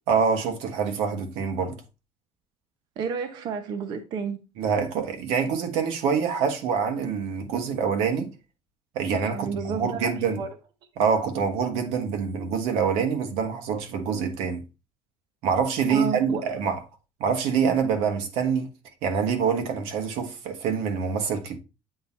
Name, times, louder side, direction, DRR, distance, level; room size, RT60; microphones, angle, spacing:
voice 1, 0.1-1.8 4.6-8.3 8.9-10.4 11.0-14.6 15.4-16.8 17.2-18.7 19.0-21.6, right 6 dB, 85° right, 1.4 m, -25 dB
voice 2, 3.0-4.4 9.2-10.5 15.9-16.4, right 6 dB, 45° right, 0.7 m, -31 dB
7.9 x 2.9 x 5.2 m
cardioid pair, 170°, 10 cm